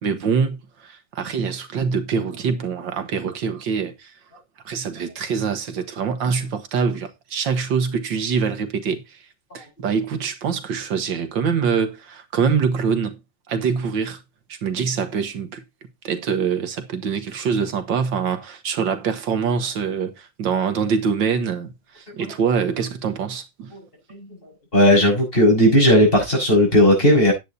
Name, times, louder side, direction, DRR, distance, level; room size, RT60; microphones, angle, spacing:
voice 1, 0.0-4.1 4.7-9.2 9.5-13.2 13.5-14.2 14.5-15.6 16.0-23.7, right 6 dB, 80° right, 2.1 m, -24 dB
voice 2, 24.7-27.3, equal, 30° left, 6.8 m, -15 dB
10.0 x 8.4 x 4.1 m
omnidirectional pair, 2.0 m